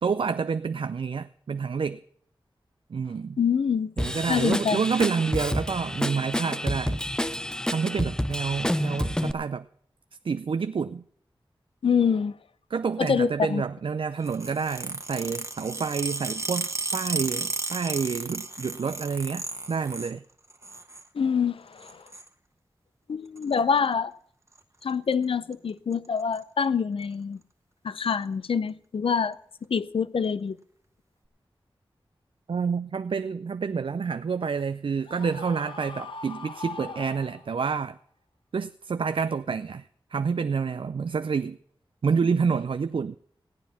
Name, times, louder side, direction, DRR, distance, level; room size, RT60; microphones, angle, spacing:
voice 1, 0.0-2.0 2.9-3.4 4.0-7.0 7.7-9.7 10.2-11.0 12.7-20.2 32.5-38.0 38.5-41.6 42.0-43.2, right 5 dB, 70° right, 0.4 m, -28 dB
voice 2, 3.4-3.9 4.3-4.8 11.8-12.4 13.0-13.6 21.1-22.0 23.1-24.1 24.8-27.4 27.8-29.4 29.7-30.6, left 6 dB, 90° left, 0.6 m, -25 dB
Drum kit / Drum, 4.0-9.3, left 1 dB, 10° left, 0.6 m, -29 dB
sound 1, 14.2-20.1 20.5-21.1 21.8-22.3 23.4-23.6 24.6-24.8 25.1-25.2 25.5-25.6 25.9-26.4 27.0-27.1 28.0-28.1, right 2 dB, 30° right, 1.3 m, -34 dB
Screaming, 35.1-37.7, left 4 dB, 70° left, 1.0 m, -41 dB
15.5 x 9.4 x 5.7 m
wide cardioid pair, 70°, 9 cm